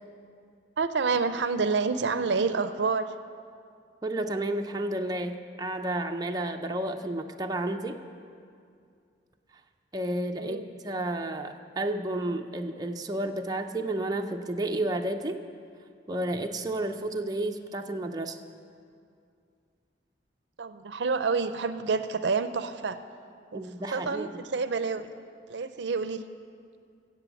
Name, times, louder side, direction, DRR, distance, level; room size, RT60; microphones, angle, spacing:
voice 1, 0.8-3.1 10.4-10.6 20.6-23.0 23.5-23.6 23.9-25.1 25.5-26.2, right 4 dB, 70° right, 11 dB, 0.5 m, -28 dB
voice 2, 4.0-8.0 9.9-15.4 16.1-18.4 23.5-24.3, right 1 dB, 20° right, 3 dB, 0.6 m, -31 dB
15.5 x 8.0 x 7.1 m, 2.3 s
head